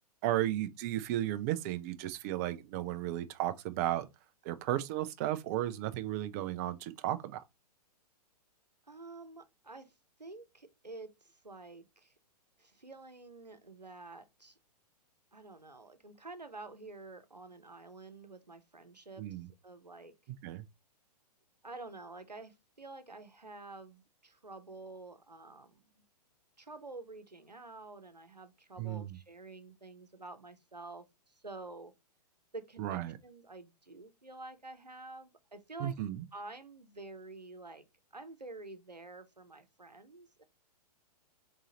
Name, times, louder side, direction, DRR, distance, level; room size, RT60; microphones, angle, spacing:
voice 1, 0.2-4.1 4.4-7.4 19.2-19.5 20.4-20.6 28.8-29.2 32.8-33.2 35.8-36.2, right 13 dB, 25° right, 0.4 m, -34 dB
voice 2, 8.9-9.9 10.2-12.1 12.6-14.6 15.3-19.2 19.6-20.1 21.6-26.0 26.6-31.9 32.5-36.0 36.3-37.8 38.1-40.4, right 3 dB, 90° right, 0.7 m, -49 dB
4.0 x 3.7 x 2.8 m
figure-of-eight pair, 110°, 21 cm